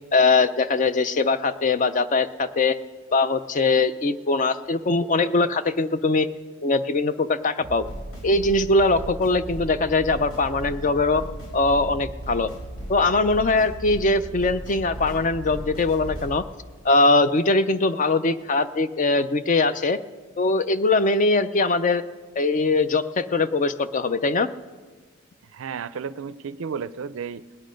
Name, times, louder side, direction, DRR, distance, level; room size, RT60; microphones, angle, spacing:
voice 1, 0.1-2.8 3.1-6.3 6.6-7.8 8.2-11.2 11.5-12.5 12.9-16.4 16.8-20.0 20.4-22.0 22.4-24.5, left 3 dB, 35° left, 12 dB, 0.4 m, -21 dB
sound 1, 7.6-16.3, right 1 dB, 80° left, 4.9 m, -36 dB
voice 2, 25.5-27.6, right 6 dB, 65° right, 16 dB, 0.4 m, -33 dB
18.5 x 9.7 x 5.1 m, 1.4 s
head